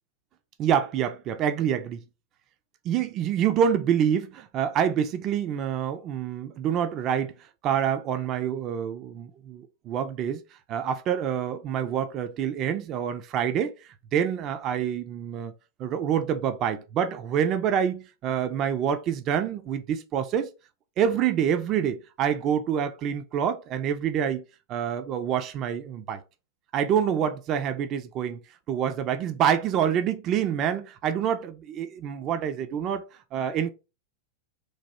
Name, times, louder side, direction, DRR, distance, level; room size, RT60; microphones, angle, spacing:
voice 1, 0.6-2.0 2.9-7.3 7.6-10.4 10.7-13.7 14.1-15.5 15.8-20.5 21.0-24.4 24.7-26.2 26.7-28.4 28.7-33.7, right 8 dB, 35° right, 0.4 m, -26 dB
3.2 x 2.3 x 2.7 m
figure-of-eight pair, 95°, 0 cm